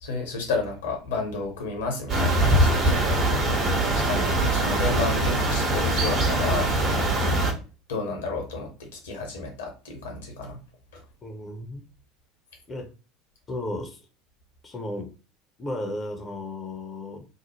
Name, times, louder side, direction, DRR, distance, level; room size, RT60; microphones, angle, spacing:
voice 1, 0.0-3.2 3.9-6.7 7.9-10.6 10.9-11.0, left 3 dB, 70° left, 2 dB, 0.8 m, -31 dB
sound 1, 2.1-7.5, right 1 dB, 35° right, 0.9 m, -22 dB
voice 2, 11.2-11.8 12.7-12.9 13.5-14.0 14.6-15.1 15.6-17.3, left 1 dB, 25° left, 4 dB, 0.6 m, -34 dB
2.6 x 2.0 x 2.9 m, 0.33 s
figure-of-eight pair, 70°, 0 cm